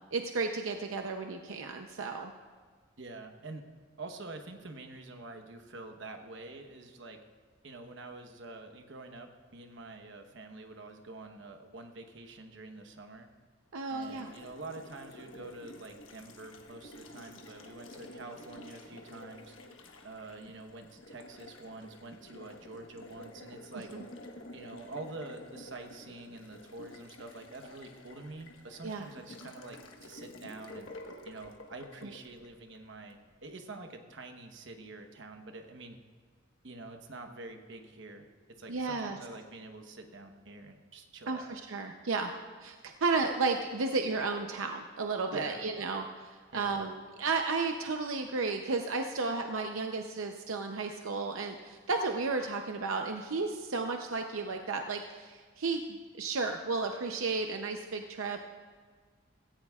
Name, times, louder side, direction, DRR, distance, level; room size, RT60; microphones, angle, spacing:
voice 1, 0.1-2.3 13.7-14.3 23.7-24.0 28.8-29.0 32.0-32.1 38.7-39.2 41.3-42.3 42.6-55.8 56.2-58.4, right 4 dB, 85° right, 4 dB, 0.7 m, -33 dB
voice 2, 3.0-3.6 4.0-7.2 7.6-13.3 13.9-19.6 20.0-23.9 24.5-30.9 31.2-36.0 36.6-41.6 45.3-45.7 46.5-46.8, right 2 dB, 60° right, 5 dB, 1.1 m, -46 dB
Water tap faucet, 14.0-33.2, left 1 dB, 75° left, 1.3 m, -50 dB
17.0 x 15.0 x 2.4 m, 1.6 s
head